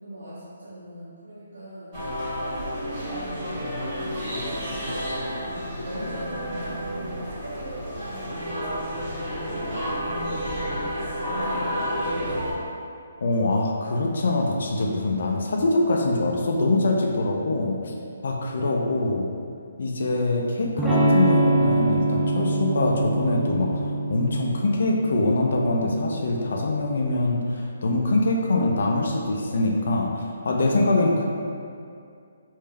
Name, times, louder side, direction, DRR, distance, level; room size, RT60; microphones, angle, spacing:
voice 1, 0.0-2.0 2.4-12.5 18.5-18.8, equal, 85° right, -9 dB, 0.8 m, -40 dB
sound 1, 1.9-12.5, equal, 35° right, 1.5 m, -30 dB
voice 2, 13.2-17.9 18.2-19.3 19.8-31.2, left 2 dB, 70° left, 0 dB, 0.5 m, -24 dB
Electric guitar / Strum, 20.8-26.5, right 2 dB, ahead, 0.4 m, -24 dB
3.4 x 2.6 x 3.3 m, 2.4 s
hypercardioid pair, 155°, 0 cm